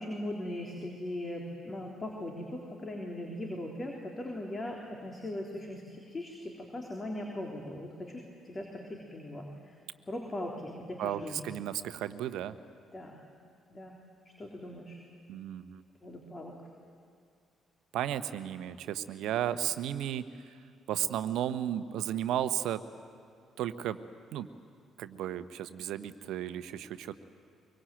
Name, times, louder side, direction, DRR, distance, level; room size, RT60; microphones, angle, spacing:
voice 1, 0.0-9.8 10.1-11.4 12.9-13.2 13.7-14.0 14.4-15.0 16.0-16.5, left 1 dB, 30° left, 0 dB, 3.6 m, -39 dB
voice 2, 11.0-12.5 15.3-15.8 17.9-20.2 20.9-22.8 23.6-24.0 24.3-24.5 25.0-27.2, right 11 dB, 65° right, 12 dB, 1.0 m, -34 dB
23.5 x 23.5 x 9.2 m, 2.4 s
hypercardioid pair, 45°, 0 cm